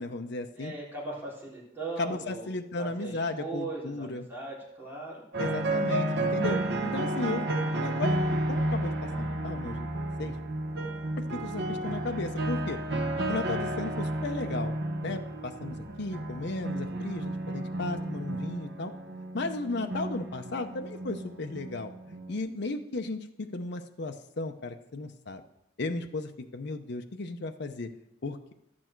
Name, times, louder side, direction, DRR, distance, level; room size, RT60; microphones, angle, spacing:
voice 1, 0.0-0.7 2.0-4.3 5.4-7.4 7.8-8.2 8.5-10.3 11.3-12.8 13.3-14.7 15.0-18.9 19.3-25.4 25.8-27.9 28.2-28.5, left 3 dB, 60° left, 6 dB, 0.7 m, -35 dB
voice 2, 0.5-2.5 2.8-5.6, right 3 dB, 10° right, -6 dB, 3.7 m, -39 dB
sound 1, 5.3-22.4, right 1 dB, 60° right, 1.0 m, -32 dB
12.0 x 8.8 x 4.5 m, 0.82 s
head